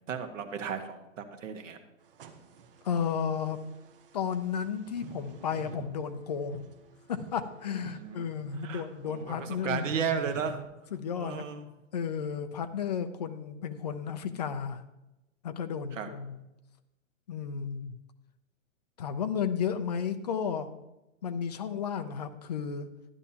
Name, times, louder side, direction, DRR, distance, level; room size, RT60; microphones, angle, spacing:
voice 1, 0.1-1.8 7.9-8.3 8.6-10.6 11.2-11.7 15.9-16.1, right 6 dB, 70° right, 5 dB, 1.5 m, -34 dB
sound 1, 2.0-10.6, right 7 dB, 45° right, 0.9 m, -48 dB
voice 2, 2.8-3.6 4.1-6.7 7.1-9.9 10.9-11.5 11.9-14.8 15.4-16.4 17.3-18.0 19.0-20.7 21.2-22.9, left 7 dB, 35° left, 8 dB, 0.5 m, -33 dB
12.5 x 10.5 x 2.9 m, 0.96 s
hypercardioid pair, 170°, 39 cm